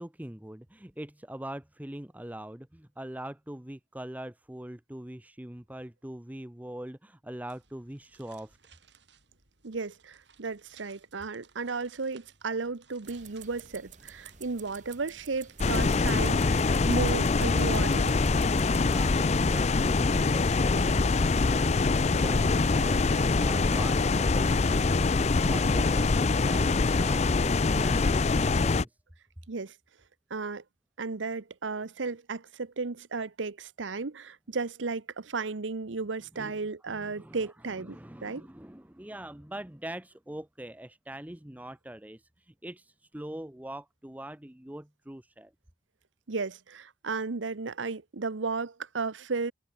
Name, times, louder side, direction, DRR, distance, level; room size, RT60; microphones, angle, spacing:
voice 1, 0.0-8.6 18.8-29.0 36.3-36.6 36.9-45.5, right 1 dB, 10° right, 0.8 m, -43 dB
sound 1, 7.5-17.2, right 6 dB, 70° right, 8.0 m, -62 dB
voice 2, 9.6-18.2 29.5-29.7 30.3-30.6 31.0-38.5 46.3-49.5, right 4 dB, 90° right, 0.9 m, -34 dB
sound 2, 13.0-19.1, right 7 dB, 40° right, 3.8 m, -51 dB
sound 3, 15.6-28.8, left 3 dB, 35° left, 0.5 m, -24 dB
head